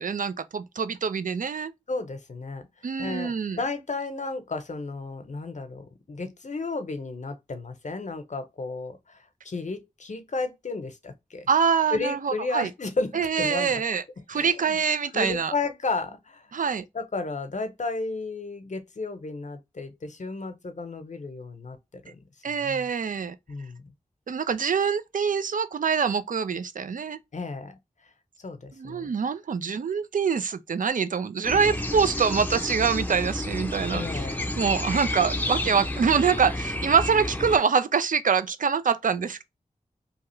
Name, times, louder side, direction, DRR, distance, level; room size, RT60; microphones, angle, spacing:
voice 1, 0.0-1.7 2.8-3.6 11.5-12.7 13.1-14.0 14.3-15.5 16.5-16.8 22.4-23.3 24.3-27.2 28.8-34.0 34.6-39.4, right 6 dB, 70° right, 0.4 m, -25 dB
voice 2, 1.9-2.7 3.0-9.2 9.4-11.5 11.9-13.8 14.3-14.8 15.1-16.5 16.9-22.2 22.5-22.9 23.5-23.9 27.3-27.8 28.4-29.1 33.9-34.5, left 3 dB, 55° left, 0.7 m, -33 dB
sound 1, 31.4-37.6, left 1 dB, 10° left, 0.6 m, -30 dB
2.8 x 2.3 x 3.0 m
cardioid pair, 45°, 14 cm